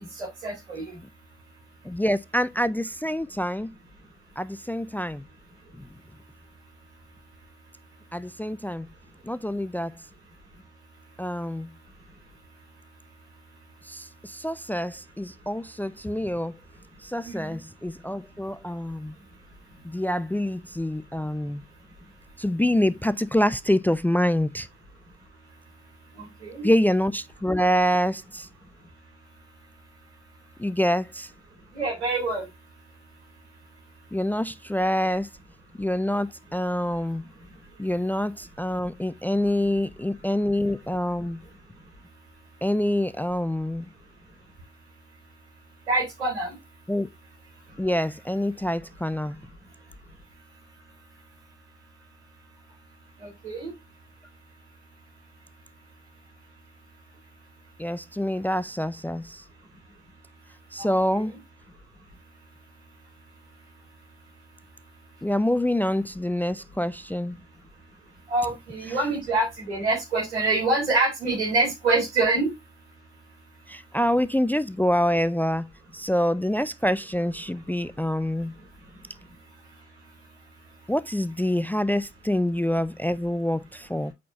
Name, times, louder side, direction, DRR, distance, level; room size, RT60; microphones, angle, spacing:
voice 1, 0.2-0.9 17.2-17.6 26.2-26.7 31.7-32.5 45.9-46.5 53.2-53.7 60.8-61.2 68.3-72.5, right 3 dB, 90° right, 3.9 m, -26 dB
voice 2, 1.8-3.7 4.4-5.2 5.8-5.9 8.1-8.9 9.2-10.0 11.2-11.7 13.8-16.5 17.0-19.2 19.8-21.6 22.4-24.7 26.6-28.5 30.6-31.3 34.1-35.3 35.8-37.3 37.8-41.4 42.6-43.9 46.9-47.1 47.8-49.4 57.8-59.4 60.7-61.4 65.2-67.4 68.9-69.0 73.7-78.6 80.9-84.1, left 1 dB, 5° left, 0.5 m, -26 dB
8.4 x 5.8 x 2.8 m
hypercardioid pair, 50°, 32 cm